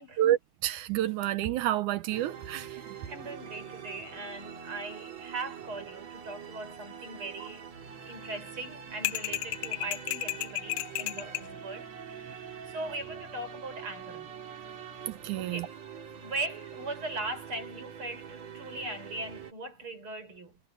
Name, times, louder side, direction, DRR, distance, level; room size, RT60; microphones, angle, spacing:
voice 1, 0.0-3.0 7.4-7.5 12.3-12.4 15.1-15.7, right 13 dB, 85° right, 2.4 m, -30 dB
sound 1, 2.1-19.5, right 7 dB, 60° right, 3.8 m, -45 dB
voice 2, 3.1-7.7 8.0-14.3 15.4-15.7 16.2-20.6, right 2 dB, 45° right, 6.8 m, -39 dB
sound 2, 9.0-11.5, left 19 dB, 80° left, 2.1 m, -33 dB
omnidirectional pair, 3.4 m